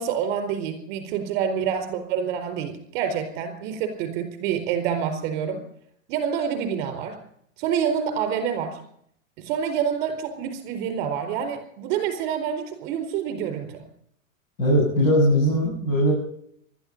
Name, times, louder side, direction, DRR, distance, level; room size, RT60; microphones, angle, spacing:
voice 1, 0.0-5.6 6.1-7.1 7.6-8.8 9.4-13.8, right 8 dB, 25° right, 7 dB, 4.3 m, -27 dB
voice 2, 14.6-16.1, equal, 85° left, -1 dB, 7.5 m, -20 dB
20.0 x 13.0 x 5.3 m, 0.68 s
supercardioid pair, 175°, 40 cm